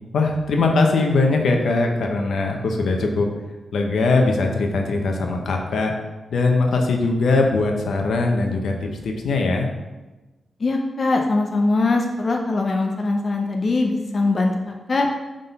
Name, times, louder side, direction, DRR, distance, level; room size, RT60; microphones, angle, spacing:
voice 1, 0.1-3.3 3.7-5.9 6.3-9.7, left 3 dB, 80° left, 2 dB, 0.9 m, -20 dB
voice 2, 10.6-15.1, left 3 dB, 45° left, 2 dB, 0.6 m, -21 dB
6.0 x 3.8 x 5.4 m, 1.2 s
cardioid pair, 95°, 0 cm